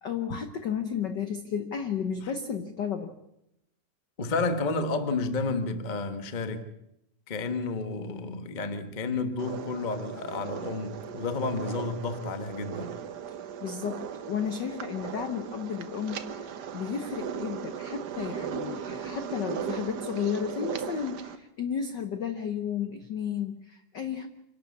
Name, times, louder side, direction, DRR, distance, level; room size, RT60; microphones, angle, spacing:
voice 1, 0.0-3.1 13.6-24.3, left 7 dB, 70° left, 8 dB, 1.0 m, -33 dB
voice 2, 4.2-6.6 7.3-13.0, left 3 dB, 35° left, 9 dB, 0.6 m, -31 dB
sound 1, 9.4-21.4, right 8 dB, 90° right, 0.9 m, -37 dB
27.0 x 12.0 x 8.5 m, 0.85 s
omnidirectional pair, 3.4 m